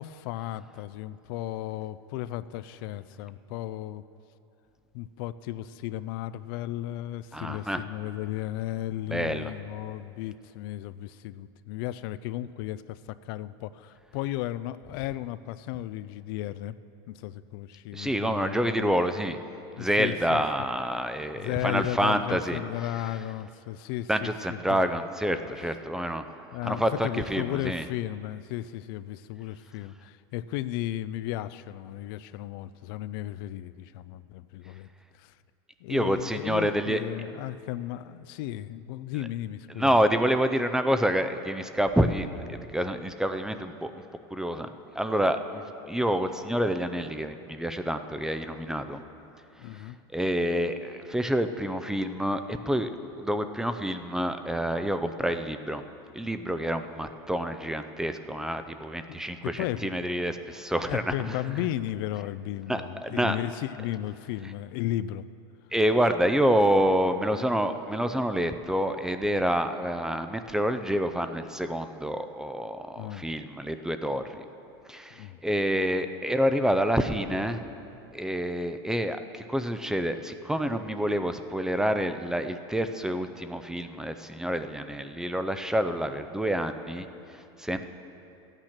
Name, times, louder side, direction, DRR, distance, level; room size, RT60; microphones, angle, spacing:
voice 1, 0.0-4.0 4.9-16.8 17.1-18.9 19.8-20.4 21.3-24.9 26.5-34.9 35.1-35.4 35.8-40.0 49.6-50.0 59.1-59.2 59.4-60.1 60.9-65.3 73.0-73.3 75.1-75.4, left 14 dB, 60° left, 14 dB, 0.4 m, -35 dB
voice 2, 7.3-7.8 9.1-9.5 17.9-19.4 19.8-22.6 24.1-26.3 26.6-27.8 35.9-37.0 39.8-43.9 44.3-44.7 45.0-49.0 49.7-52.9 53.2-55.8 56.1-61.1 62.7-63.4 65.7-74.4 74.9-77.6 78.1-87.9, equal, 5° right, 9 dB, 0.4 m, -28 dB
13.5 x 8.9 x 5.9 m, 2.8 s
supercardioid pair, 130°, 13 cm